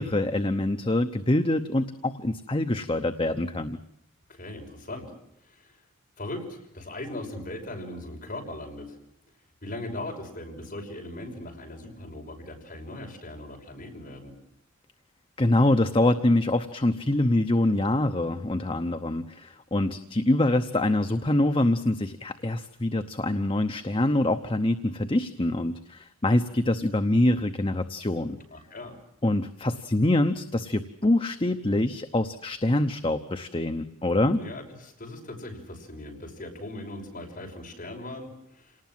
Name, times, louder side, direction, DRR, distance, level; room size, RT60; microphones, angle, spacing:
voice 1, 0.0-3.8 15.4-28.4 29.2-34.4, left 1 dB, 25° left, 8 dB, 0.8 m, -25 dB
voice 2, 4.3-5.1 5.5-5.8 6.2-9.0 9.6-14.3 28.5-29.0 34.2-38.8, left 1 dB, 40° left, 1 dB, 5.9 m, -39 dB
27.5 x 19.0 x 7.7 m, 0.79 s
head